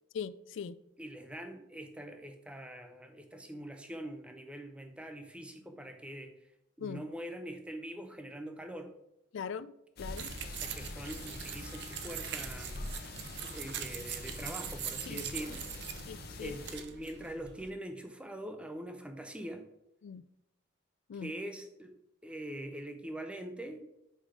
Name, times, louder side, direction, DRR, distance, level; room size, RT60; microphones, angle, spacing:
voice 1, 0.1-0.8 6.8-7.0 9.3-10.3 15.1-15.2 16.1-16.5 20.0-20.2 21.1-21.3, left 6 dB, 65° left, 0.3 m, -41 dB
voice 2, 1.0-6.3 6.8-8.9 10.4-16.1 16.4-19.6 21.1-21.9 22.2-23.9, right 1 dB, 5° right, 0.6 m, -43 dB
sound 1, 10.0-16.8, left 2 dB, 50° left, 0.9 m, -44 dB
sound 2, 10.2-17.7, right 9 dB, 55° right, 0.6 m, -43 dB
5.6 x 5.0 x 4.9 m
head